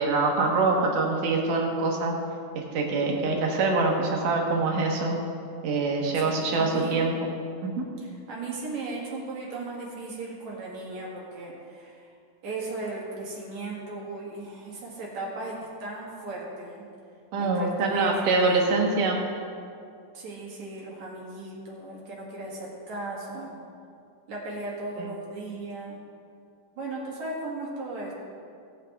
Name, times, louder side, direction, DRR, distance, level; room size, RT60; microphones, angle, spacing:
voice 1, 0.0-2.1 2.6-5.1 5.6-7.1 17.3-19.2 25.0-25.1, right 3 dB, 80° right, 0 dB, 3.0 m, -24 dB
voice 2, 6.2-7.1 8.3-12.1 12.4-16.8 17.4-18.7 20.1-23.6 24.3-26.0 26.8-28.1, right 2 dB, 60° right, -4 dB, 3.1 m, -36 dB
18.0 x 8.8 x 3.5 m, 2.4 s
omnidirectional pair, 3.7 m